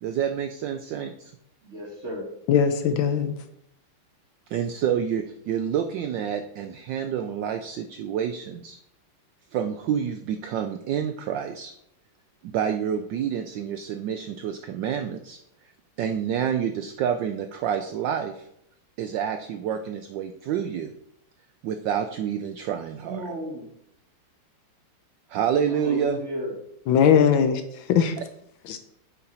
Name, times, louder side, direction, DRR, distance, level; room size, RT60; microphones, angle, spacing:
voice 1, 0.0-1.3 4.5-8.8 9.5-11.7 12.4-15.4 16.0-18.5 19.0-20.9 21.6-23.2 25.3-26.2, right 8 dB, 80° right, 1.0 m, -28 dB
voice 2, 1.6-2.3 23.0-23.6 25.7-26.5, equal, 40° right, 1.2 m, -33 dB
voice 3, 2.5-3.3 26.9-27.6 27.9-28.2 28.7-28.8, left 8 dB, 75° left, 1.3 m, -19 dB
8.8 x 4.1 x 4.2 m
omnidirectional pair, 2.4 m